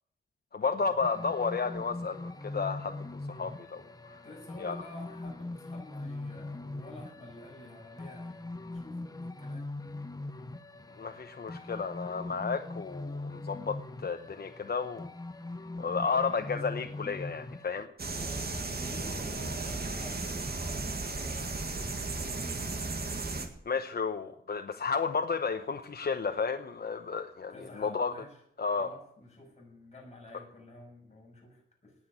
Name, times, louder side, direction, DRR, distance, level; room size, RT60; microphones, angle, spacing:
voice 1, 0.5-4.2 4.6-4.8 10.9-15.1 15.8-17.9 23.7-28.1 28.6-28.9, left 5 dB, 50° left, 6 dB, 0.9 m, -32 dB
sound 1, 1.0-17.9, left 2 dB, 20° left, 0.8 m, -41 dB
voice 2, 4.2-9.7 18.2-22.8 27.5-28.4 28.7-31.9, left 1 dB, 35° left, -1 dB, 6.6 m, -50 dB
sound 2, 18.0-23.5, right 3 dB, 50° right, 2.1 m, -35 dB
19.0 x 6.3 x 9.7 m, 0.71 s
wide cardioid pair, 145°, 20 cm